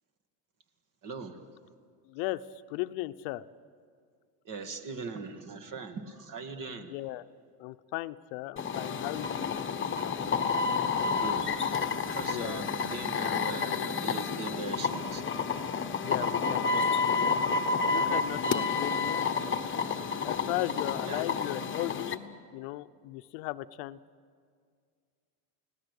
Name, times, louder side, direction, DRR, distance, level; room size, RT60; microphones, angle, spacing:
voice 1, 1.0-1.4 4.4-6.9 11.0-11.6 12.1-15.2 21.0-21.3, right 4 dB, 40° right, 7 dB, 2.2 m, -40 dB
voice 2, 2.1-2.4 2.7-3.5 6.9-7.2 7.6-9.6 12.2-12.7 16.0-17.3 17.8-19.2 20.2-22.2 22.5-24.0, left 18 dB, 85° left, 13 dB, 0.9 m, -36 dB
sound 1, 8.6-22.1, left 5 dB, 25° left, 1.1 m, -30 dB
29.5 x 18.0 x 8.3 m, 2.1 s
cardioid pair, 145°, 49 cm